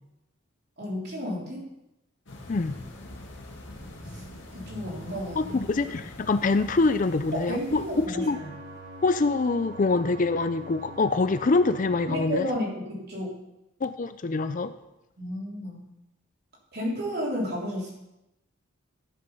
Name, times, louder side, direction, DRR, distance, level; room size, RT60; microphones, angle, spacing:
voice 1, 0.8-1.7 4.0-4.2 4.5-5.6 7.3-8.5 12.1-13.4 15.2-15.8 16.7-17.9, equal, 50° right, -3 dB, 3.2 m, -32 dB
sound 1, 2.3-8.1, left 1 dB, 60° left, 2.0 m, -43 dB
voice 2, 5.4-8.4 9.0-12.5 13.8-14.7, left 3 dB, 40° left, 11 dB, 0.4 m, -25 dB
sound 2, 8.2-12.2, right 1 dB, 75° right, 2.6 m, -44 dB
12.5 x 6.9 x 5.6 m, 0.92 s
head